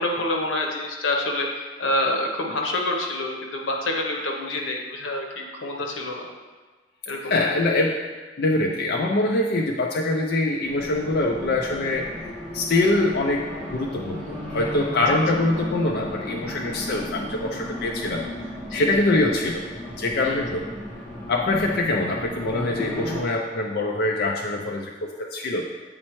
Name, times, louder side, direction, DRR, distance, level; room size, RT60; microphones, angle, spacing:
voice 1, 0.0-6.3 7.1-7.5 18.7-18.9 20.2-20.4, left 1 dB, 90° left, 1 dB, 1.0 m, -27 dB
voice 2, 7.3-8.0 8.4-12.1 12.5-18.3 18.7-19.6 20.0-20.7 21.3-25.6, left 2 dB, 55° left, -1 dB, 0.5 m, -24 dB
Race car auto racing, 10.6-23.2, left 1 dB, 5° left, 1.4 m, -35 dB
8.6 x 4.2 x 3.1 m, 1.3 s
head